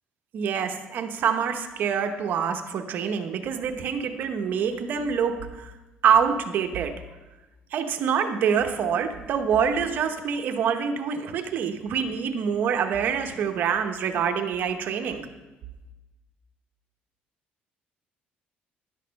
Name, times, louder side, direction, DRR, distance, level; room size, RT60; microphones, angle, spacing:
voice 1, 0.3-5.7 6.0-6.9 7.7-15.2, right 7 dB, 55° right, 6 dB, 0.9 m, -26 dB
11.0 x 6.6 x 5.2 m, 1.1 s
cardioid pair, 135°, 4 cm